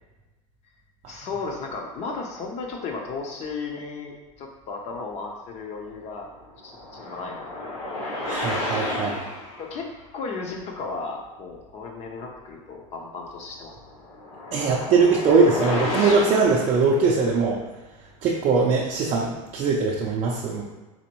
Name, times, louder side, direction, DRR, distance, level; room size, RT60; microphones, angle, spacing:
voice 1, 1.1-6.3 6.6-7.8 8.9-9.0 9.6-13.8, left 4 dB, 40° left, 2 dB, 0.7 m, -35 dB
sound 1, 6.1-9.7 13.6-17.3, left 1 dB, 70° left, 1.3 m, -31 dB
voice 2, 8.2-9.2 14.5-17.6 18.2-20.6, right 4 dB, 35° right, -3 dB, 0.5 m, -21 dB
4.1 x 2.6 x 2.9 m, 1.2 s
supercardioid pair, 115°, 17 cm